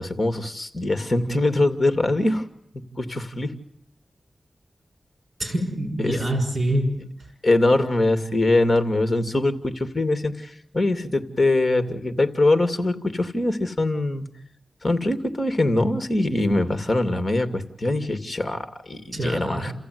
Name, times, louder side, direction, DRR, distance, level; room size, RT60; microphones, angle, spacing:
voice 1, 0.0-2.4 3.0-3.5 6.0-6.1 7.4-14.2 14.8-19.7, left 2 dB, 35° left, 9 dB, 2.6 m, -23 dB
voice 2, 5.4-7.0 19.1-19.7, right 1 dB, 40° right, 4 dB, 6.3 m, -25 dB
30.0 x 15.0 x 9.6 m, 0.75 s
wide cardioid pair, 105°, 0 cm